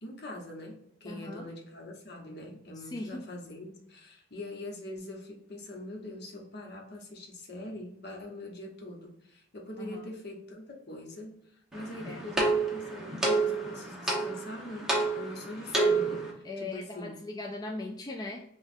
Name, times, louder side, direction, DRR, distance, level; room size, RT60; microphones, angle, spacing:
voice 1, 0.0-17.2, left 1 dB, 60° left, 0 dB, 1.0 m, -43 dB
voice 2, 1.1-1.5 2.9-3.2 9.8-10.1 12.0-12.3 16.4-18.4, left 2 dB, 20° left, 1 dB, 0.3 m, -39 dB
sound 1, 11.7-16.3, right 3 dB, 5° right, 1.0 m, -29 dB
6.0 x 2.4 x 2.6 m, 0.75 s
head